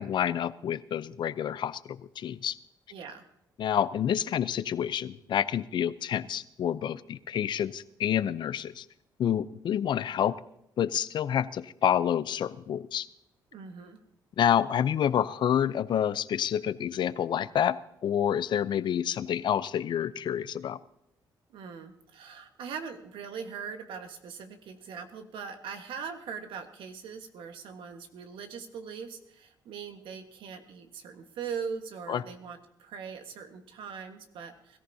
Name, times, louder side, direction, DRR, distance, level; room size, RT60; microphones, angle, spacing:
voice 1, 0.0-2.6 3.6-8.8 9.2-10.4 10.8-13.1 14.4-20.8 32.1-32.2, left 9 dB, 65° left, 16 dB, 0.6 m, -28 dB
voice 2, 2.9-3.3 13.5-14.0 21.5-34.8, right 6 dB, 85° right, 6 dB, 1.4 m, -41 dB
21.0 x 14.0 x 2.8 m, 0.79 s
cardioid pair, 85°, 8 cm